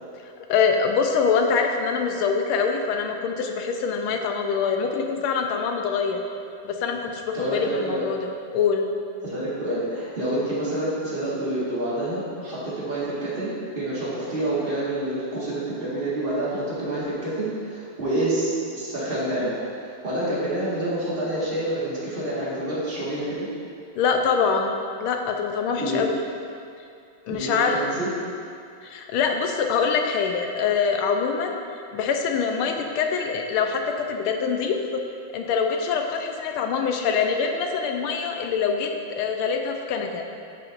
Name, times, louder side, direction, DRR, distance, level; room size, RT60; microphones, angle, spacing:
voice 1, 0.4-6.2 6.6-8.2 8.5-8.9 24.0-24.7 25.0-26.2 27.3-27.7 28.8-31.6 31.9-33.8 34.1-34.8 35.3-38.9 39.2-40.2, left 6 dB, 85° left, 3 dB, 1.5 m, -24 dB
voice 2, 7.3-8.1 9.2-23.4 25.8-26.0 27.3-28.1, right 1 dB, 30° right, -8 dB, 1.7 m, -28 dB
10.0 x 5.7 x 2.5 m, 2.4 s
omnidirectional pair, 2.3 m